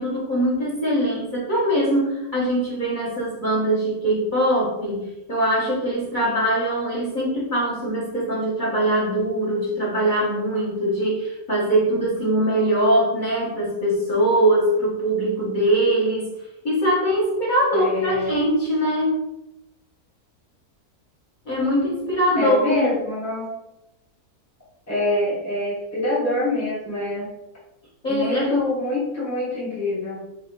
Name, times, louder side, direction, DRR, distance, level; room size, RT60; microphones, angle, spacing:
voice 1, 0.0-16.3 16.6-19.2 21.4-22.9 28.0-28.7, right 1 dB, 30° left, -7 dB, 1.5 m, -22 dB
voice 2, 17.7-18.4 22.4-23.5 24.9-27.3 28.1-30.2, left 1 dB, 10° left, -7 dB, 1.2 m, -25 dB
3.8 x 3.6 x 3.7 m, 0.92 s
omnidirectional pair, 1.6 m